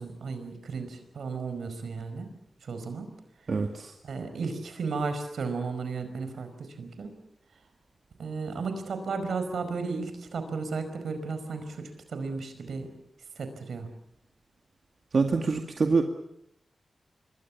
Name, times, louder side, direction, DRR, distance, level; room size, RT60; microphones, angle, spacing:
voice 1, 0.0-2.3 2.6-3.1 4.0-7.1 8.2-12.9 13.4-13.9, right 4 dB, 85° right, 9 dB, 4.9 m, -34 dB
voice 2, 3.5-3.9 15.1-16.0, right 4 dB, 60° right, 4 dB, 2.2 m, -25 dB
26.5 x 22.0 x 7.2 m, 0.74 s
cardioid pair, 70°, 0 cm